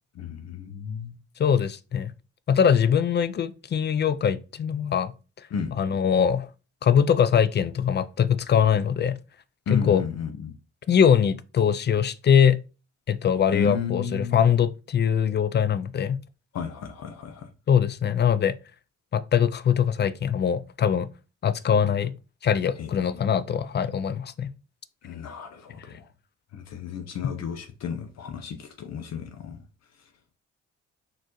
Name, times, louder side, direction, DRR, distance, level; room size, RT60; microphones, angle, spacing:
voice 1, 0.1-1.2 5.5-5.8 9.7-10.5 13.5-14.5 16.5-17.5 22.8-23.2 25.0-26.1 26.5-29.6, left 6 dB, 60° left, 0.8 m, -33 dB
voice 2, 1.4-2.1 2.5-5.1 5.8-6.5 6.8-9.2 9.7-10.0 10.9-12.6 13.1-16.2 17.7-18.5 19.1-21.1 21.4-22.1 22.4-24.5, left 8 dB, 35° left, 0.4 m, -22 dB
4.4 x 3.8 x 3.0 m
cardioid pair, 90°, 30 cm